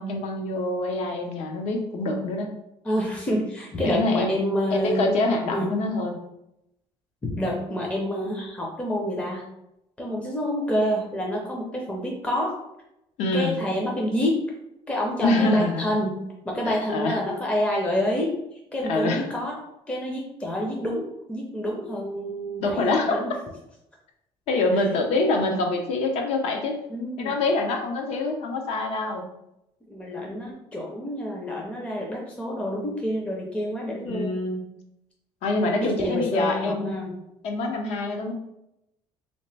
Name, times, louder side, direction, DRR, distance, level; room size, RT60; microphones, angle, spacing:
voice 1, 0.0-2.5 3.8-4.3 4.7-6.2 13.2-13.6 15.2-15.8 16.6-17.2 18.8-19.4 22.6-23.2 24.5-26.8 27.2-29.3 34.0-34.6 35.4-37.0 37.4-38.3, left 2 dB, 70° left, 3 dB, 0.7 m, -25 dB
voice 2, 2.8-5.2 5.5-5.8 7.2-9.4 10.0-12.5 13.3-14.5 14.9-16.2 16.4-18.4 18.7-19.5 19.9-23.3 26.9-27.3 28.1-28.2 29.9-34.4 35.8-37.1, equal, 10° left, -1 dB, 0.5 m, -28 dB
3.3 x 2.8 x 3.2 m, 0.84 s
cardioid pair, 155°, 12 cm